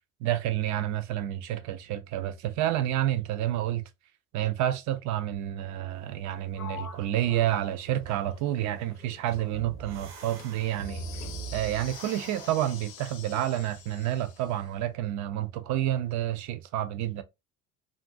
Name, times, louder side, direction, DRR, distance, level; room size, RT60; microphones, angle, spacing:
voice 1, 0.2-3.8 4.3-11.1 11.5-17.2, right 12 dB, 40° right, 0.4 m, -29 dB
Sliding door, 6.5-10.1 10.4-11.7, left 8 dB, 80° left, 0.6 m, -48 dB
sound 1, 9.5-13.0, right 4 dB, 65° right, 0.9 m, -41 dB
sound 2, 10.6-14.7, left 10 dB, 40° left, 0.5 m, -47 dB
2.4 x 2.4 x 2.4 m
figure-of-eight pair, 60°, 45 cm